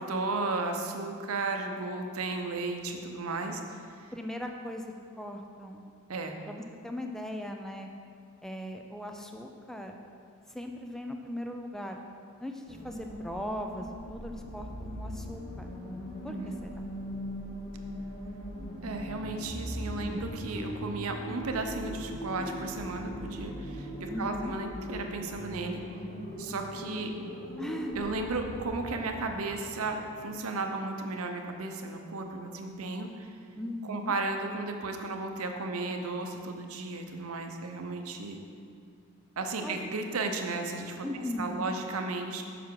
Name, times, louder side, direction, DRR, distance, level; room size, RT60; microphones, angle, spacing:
voice 1, 0.0-3.6 4.0-4.1 6.1-6.4 16.3-16.6 18.8-25.8 26.4-27.1 28.0-33.4 33.8-38.4 39.4-42.4, right 3 dB, 75° right, 4 dB, 0.7 m, -34 dB
voice 2, 4.1-5.8 6.5-7.9 8.4-10.0 10.5-12.0 12.4-15.7 16.2-16.7 20.0-20.3 24.1-24.5 27.6-27.9 33.6-34.1 39.6-39.8 41.0-41.7, left 1 dB, ahead, 3 dB, 0.4 m, -38 dB
sound 1, 12.7-30.9, equal, 30° left, 0.9 m, -40 dB
7.1 x 5.8 x 4.7 m, 2.3 s
head